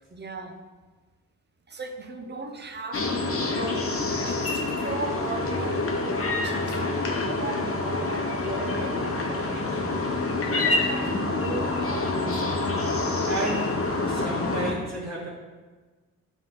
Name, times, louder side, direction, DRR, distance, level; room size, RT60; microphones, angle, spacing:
voice 1, 0.1-0.6 1.7-3.9 4.3-10.0 10.4-12.7, right 3 dB, 30° right, 5 dB, 0.8 m, -37 dB
sound 1, 2.9-14.7, left 2 dB, 40° left, 1.1 m, -27 dB
voice 2, 13.2-15.3, right 2 dB, 50° right, -6 dB, 1.5 m, -33 dB
8.9 x 3.5 x 3.8 m, 1.3 s
cardioid pair, 75°, 36 cm